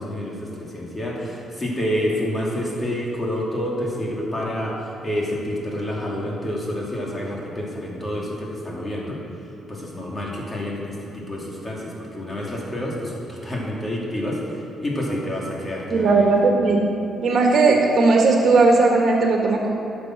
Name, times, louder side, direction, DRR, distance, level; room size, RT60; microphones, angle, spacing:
voice 1, 0.0-9.2 9.7-16.3, equal, 25° left, -3 dB, 2.7 m, -28 dB
voice 2, 15.9-16.8 17.2-19.7, right 3 dB, 55° right, 0 dB, 1.7 m, -17 dB
11.0 x 7.0 x 6.1 m, 2.6 s
cardioid pair, 90°, 0 cm